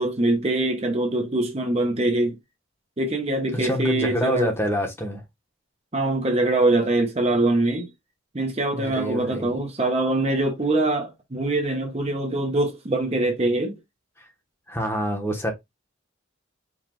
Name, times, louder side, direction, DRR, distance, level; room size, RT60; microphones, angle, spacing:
voice 1, 0.0-2.4 3.0-4.5 5.9-7.9 8.3-13.7, right 2 dB, 30° right, 0.7 m, -23 dB
voice 2, 3.5-5.2 8.7-9.6 14.2-14.3 14.7-15.5, equal, 10° left, 1.0 m, -27 dB
4.8 x 2.4 x 3.7 m
head